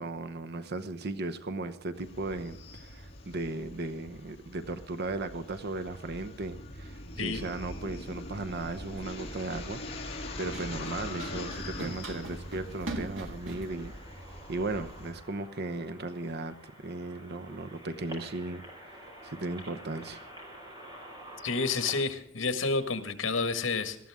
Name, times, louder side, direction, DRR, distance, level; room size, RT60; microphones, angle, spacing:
voice 1, 0.0-13.9 14.5-18.6 18.9-20.2, right 2 dB, 55° right, 9 dB, 0.9 m, -36 dB
sound 1, 1.9-15.1, left 1 dB, 30° left, 4.3 m, -43 dB
Run, 7.2-15.1, right 2 dB, 75° right, 2.0 m, -45 dB
sound 2, 10.2-22.0, right 1 dB, 20° right, 5.0 m, -50 dB
voice 2, 21.4-24.1, left 4 dB, 75° left, 8 dB, 1.8 m, -30 dB
19.0 x 14.0 x 3.6 m, 0.67 s
head